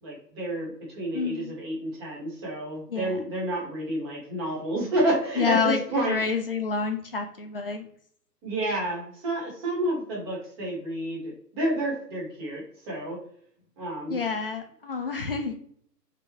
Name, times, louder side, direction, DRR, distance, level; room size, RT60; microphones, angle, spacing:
voice 1, 0.0-6.2 8.4-13.2 13.8-14.2, right 1 dB, 15° right, -4 dB, 0.9 m, -30 dB
voice 2, 1.1-1.5 2.9-3.2 5.4-5.8 6.1-7.8 14.1-15.5, left 5 dB, 40° left, 5 dB, 0.4 m, -28 dB
3.5 x 2.9 x 2.8 m, 0.62 s
figure-of-eight pair, 135°, 49 cm